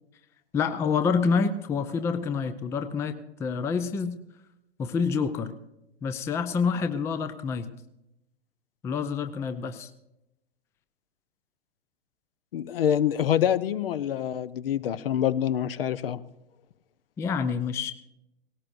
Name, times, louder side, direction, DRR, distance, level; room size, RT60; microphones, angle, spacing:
voice 1, 0.5-4.2 4.8-5.5 6.0-7.7 8.8-9.9 17.2-17.9, left 5 dB, 10° left, 10 dB, 0.4 m, -27 dB
voice 2, 12.5-16.2, left 10 dB, 60° left, 16 dB, 0.8 m, -26 dB
18.5 x 18.0 x 2.6 m, 0.89 s
figure-of-eight pair, 110°, 33 cm